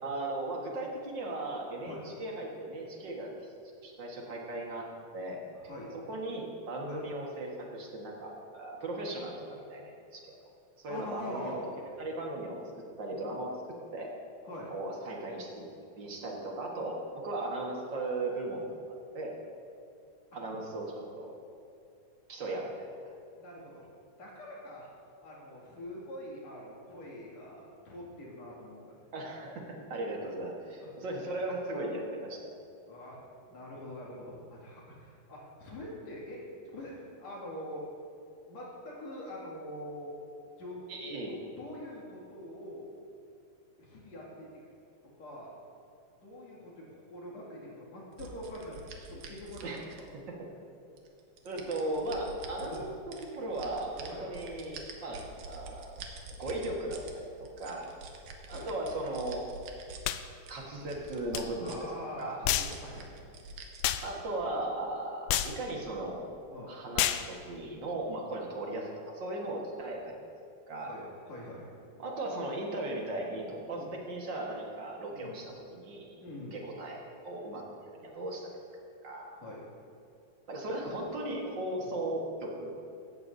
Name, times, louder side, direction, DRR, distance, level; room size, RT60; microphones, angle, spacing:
voice 1, 0.0-3.5 3.8-4.9 5.1-5.4 6.1-10.4 10.8-11.6 12.0-12.6 13.0-13.5 13.9-14.1 14.7-15.6 16.0-18.7 19.0-19.3 20.3-21.3 22.3-22.9 29.1-32.5 40.9-41.4 49.6-49.8 51.4-56.0 56.4-57.9 58.5-59.4 60.5-61.8 62.2-62.4 64.0-66.2 66.7-70.1 70.7-70.9 72.0-76.2 76.5-78.5 79.0-79.3 80.5-82.7, right 2 dB, 45° right, -1 dB, 1.8 m, -37 dB
voice 2, 5.6-5.9 6.9-7.0 10.9-11.7 14.4-14.7 22.4-22.5 23.4-23.9 24.2-24.9 25.2-28.8 30.8-30.9 32.9-33.2 33.5-37.9 38.5-40.1 40.6-40.8 41.2-43.0 43.8-44.6 45.2-45.6 46.2-48.8 49.1-50.1 52.7-52.8 54.1-54.3 55.1-55.2 58.5-58.7 61.6-63.2 66.5-66.8 70.8-71.7 73.7-73.9 75.1-75.4 76.2-76.6 79.4-79.7 81.8-81.9, left 1 dB, 60° left, -5 dB, 3.6 m, -44 dB
sound 1, 48.2-50.3 51.0-52.8 53.1-57.1 57.5-60.0 60.4-61.9 62.2-62.3 62.7-64.1, right 4 dB, 80° right, 2.6 m, -47 dB
sound 2, 60.0-60.2 61.3-61.5 62.5-62.8 63.8-64.1 65.3-65.6 67.0-67.3, left 12 dB, 80° left, 1.9 m, -29 dB
16.5 x 13.5 x 2.7 m, 2.4 s
omnidirectional pair, 3.6 m